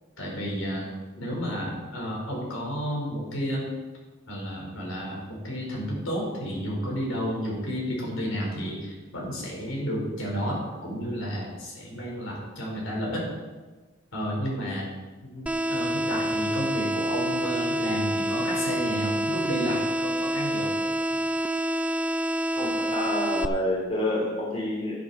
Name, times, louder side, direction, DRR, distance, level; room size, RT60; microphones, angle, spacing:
voice 1, 0.2-0.9 1.2-3.7 4.3-13.3 14.1-14.9 15.3-20.7, equal, 75° left, -2 dB, 4.4 m, -31 dB
sound 1, 15.5-23.5, right 1 dB, 5° right, 0.3 m, -27 dB
voice 2, 22.5-25.0, left 1 dB, 30° left, -5 dB, 3.1 m, -28 dB
12.5 x 11.0 x 4.2 m, 1.2 s
head